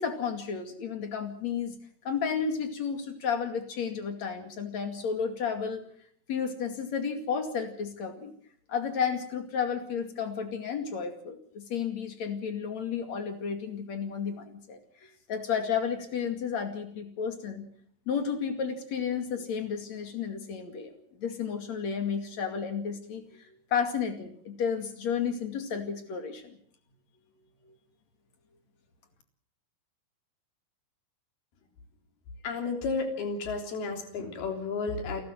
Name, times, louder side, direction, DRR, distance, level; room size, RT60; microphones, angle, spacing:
voice 1, 0.0-1.8 2.1-5.8 6.3-8.3 8.7-14.8 15.3-17.7 18.1-20.9 21.2-26.6 27.7-27.8, left 6 dB, 50° left, 6 dB, 3.4 m, -32 dB
voice 2, 32.4-35.3, left 4 dB, 90° left, 4 dB, 5.3 m, -32 dB
29.0 x 13.0 x 7.8 m, 0.62 s
omnidirectional pair, 4.3 m